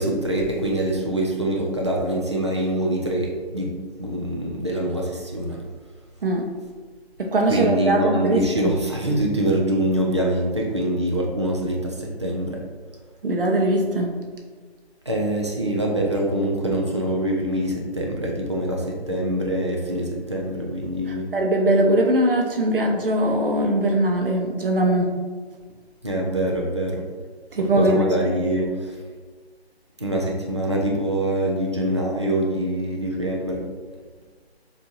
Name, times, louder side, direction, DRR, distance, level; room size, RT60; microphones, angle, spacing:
voice 1, 0.0-3.7 4.0-5.6 7.5-12.6 15.1-21.3 26.0-27.0 27.6-28.9 30.0-33.6, right 1 dB, 30° right, -1 dB, 0.4 m, -24 dB
voice 2, 7.2-8.7 13.2-14.2 21.1-25.2 27.5-28.1, right 1 dB, 55° right, 1 dB, 0.7 m, -21 dB
6.9 x 2.6 x 2.6 m, 1.5 s
figure-of-eight pair, 160°, 33 cm